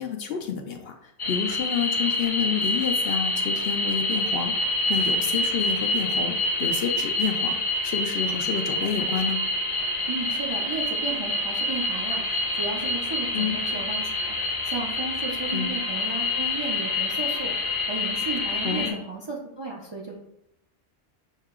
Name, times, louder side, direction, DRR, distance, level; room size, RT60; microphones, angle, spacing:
voice 1, 0.0-7.6 7.8-9.4 13.3-13.6 15.5-15.7 18.6-19.0, left 7 dB, 65° left, 3 dB, 0.7 m, -29 dB
sound 1, 1.2-18.9, left 2 dB, 30° left, 0.8 m, -27 dB
voice 2, 10.1-20.2, right 3 dB, 35° right, -3 dB, 0.5 m, -34 dB
6.4 x 2.7 x 2.4 m, 0.79 s
omnidirectional pair, 1.2 m